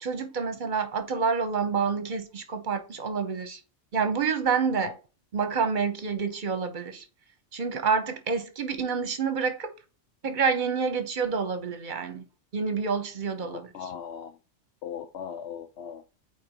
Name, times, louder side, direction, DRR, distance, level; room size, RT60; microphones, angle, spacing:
voice 1, 0.0-3.6 3.9-5.0 5.3-7.0 7.5-9.7 10.2-12.2 12.5-13.9, right 5 dB, 45° right, 1.0 m, -28 dB
voice 2, 13.4-14.3 14.8-16.0, left 8 dB, 70° left, 0.9 m, -38 dB
4.5 x 4.5 x 5.1 m
omnidirectional pair, 1.2 m